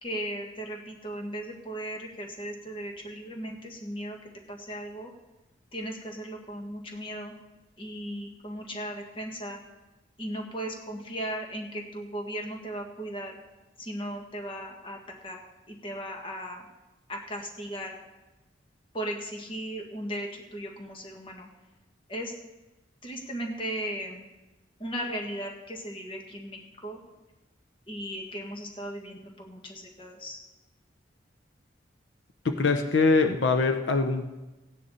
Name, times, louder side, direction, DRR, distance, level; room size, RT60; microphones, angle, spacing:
voice 1, 0.0-4.2 4.5-5.1 5.7-7.3 7.8-9.6 10.2-13.4 13.8-15.0 15.2-15.4 15.7-16.7 17.1-18.0 18.9-21.5 22.1-22.3 23.0-24.2 24.8-27.0 27.9-30.4, equal, 30° left, 2 dB, 1.6 m, -37 dB
voice 2, 32.4-34.3, left 3 dB, 75° left, 7 dB, 0.8 m, -23 dB
16.0 x 9.7 x 4.2 m, 1.1 s
head